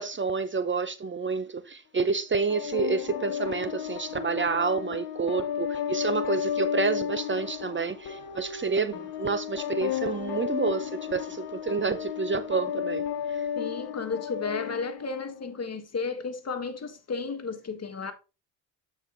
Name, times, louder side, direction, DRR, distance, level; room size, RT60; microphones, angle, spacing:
voice 1, 0.0-13.4, right 4 dB, 30° right, 0.8 m, -29 dB
sound 1, 2.5-15.5, left 9 dB, 75° left, 1.1 m, -33 dB
voice 2, 13.5-18.1, left 4 dB, 40° left, 1.6 m, -33 dB
8.4 x 4.8 x 3.7 m
hypercardioid pair, 55°, 40 cm